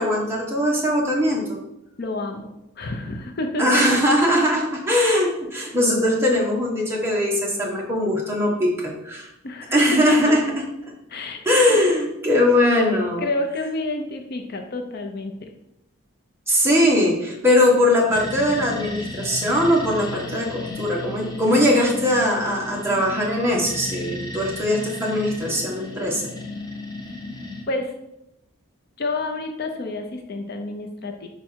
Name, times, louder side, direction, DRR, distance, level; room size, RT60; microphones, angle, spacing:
voice 1, 0.0-1.6 3.6-9.3 9.7-10.4 11.4-13.2 16.5-26.2, left 1 dB, 10° right, -4 dB, 1.3 m, -20 dB
voice 2, 2.0-2.5 2.8-3.8 9.4-9.7 10.1-10.2 11.1-11.8 12.5-12.6 13.2-15.5 27.7-27.9 29.0-31.3, left 2 dB, 50° left, 4 dB, 0.6 m, -29 dB
sound 1, 18.1-27.6, left 2 dB, 20° left, 0.8 m, -34 dB
5.3 x 4.7 x 4.4 m, 0.85 s
head